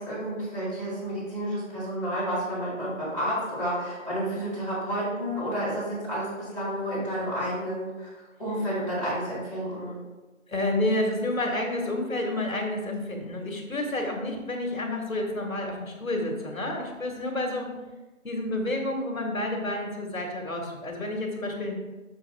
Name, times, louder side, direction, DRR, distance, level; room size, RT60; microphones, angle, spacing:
voice 1, 0.0-8.1 8.4-10.0, equal, 5° right, -21 dB, 2.4 m, -30 dB
voice 2, 10.5-17.7 18.2-21.8, left 1 dB, 80° left, 1 dB, 1.8 m, -29 dB
6.8 x 6.1 x 3.4 m, 1.2 s
figure-of-eight pair, 175°, 40 cm